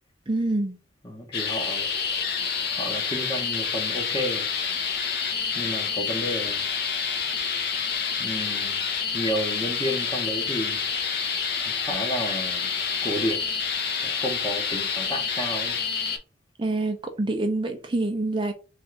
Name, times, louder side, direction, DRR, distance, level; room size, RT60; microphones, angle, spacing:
voice 1, 0.3-0.8 16.6-18.5, right 2 dB, 25° right, 0.5 m, -26 dB
voice 2, 1.0-1.9 2.7-4.5 5.5-6.7 8.2-8.8 9.1-10.8 11.7-12.7 13.0-13.4 14.0-15.8, equal, 20° left, 0.9 m, -31 dB
sound 1, 1.3-16.2, left 6 dB, 55° left, 0.9 m, -28 dB
3.6 x 2.5 x 4.4 m
head